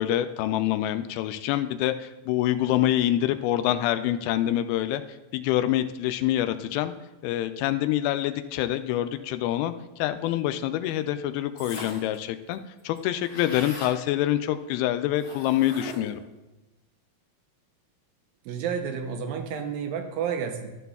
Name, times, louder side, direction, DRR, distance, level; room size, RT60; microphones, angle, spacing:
voice 1, 0.0-5.0 5.3-6.9 7.2-16.2, left 13 dB, 85° left, 10 dB, 2.4 m, -26 dB
sound 1, 11.6-12.1 12.5-12.6 12.8-14.0 15.2-16.2, left 2 dB, 30° left, 3.8 m, -40 dB
voice 2, 18.5-20.7, right 7 dB, 75° right, 5 dB, 2.4 m, -30 dB
12.5 x 12.5 x 2.3 m, 1.1 s
omnidirectional pair, 4.4 m